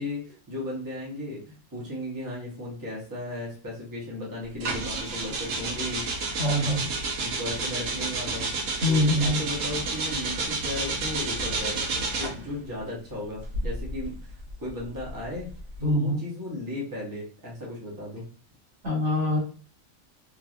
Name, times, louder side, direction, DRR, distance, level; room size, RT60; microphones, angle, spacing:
voice 1, 0.0-6.1 7.2-8.5 8.9-14.3 14.6-15.5 15.8-18.2, left 1 dB, 15° right, -5 dB, 0.9 m, -35 dB
sound 1, 4.6-12.5 13.4-15.9, right 3 dB, 75° right, 1.1 m, -30 dB
voice 2, 6.4-6.9 8.8-9.4 15.8-16.2 18.8-19.4, left 1 dB, 60° right, -4 dB, 1.5 m, -24 dB
3.0 x 2.6 x 2.4 m, 0.39 s
omnidirectional pair, 1.4 m